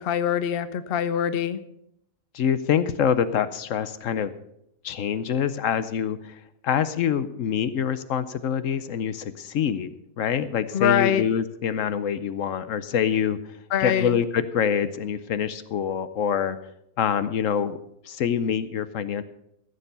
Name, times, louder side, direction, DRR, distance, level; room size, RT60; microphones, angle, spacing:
voice 1, 0.0-1.6 10.7-11.2 13.7-14.2, left 9 dB, 55° left, 13 dB, 0.8 m, -23 dB
voice 2, 2.3-4.3 4.8-6.4 6.6-13.4 13.8-16.6 17.0-19.2, left 8 dB, 75° left, 13 dB, 1.0 m, -25 dB
14.5 x 6.8 x 6.8 m, 0.78 s
omnidirectional pair, 1.4 m